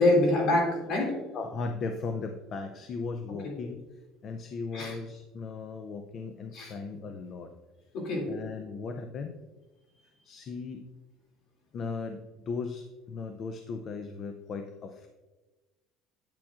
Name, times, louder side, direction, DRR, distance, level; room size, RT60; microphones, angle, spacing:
voice 1, 0.0-1.2 3.4-3.5 4.7-5.0 6.5-6.7 7.9-8.3, left 2 dB, 50° left, 0 dB, 2.4 m, -25 dB
voice 2, 1.3-3.8 4.2-7.5 8.3-9.4 10.2-10.8 11.7-15.1, left 4 dB, 35° left, 6 dB, 0.5 m, -37 dB
8.8 x 8.5 x 2.4 m, 1.2 s
cardioid pair, 165°, 0 cm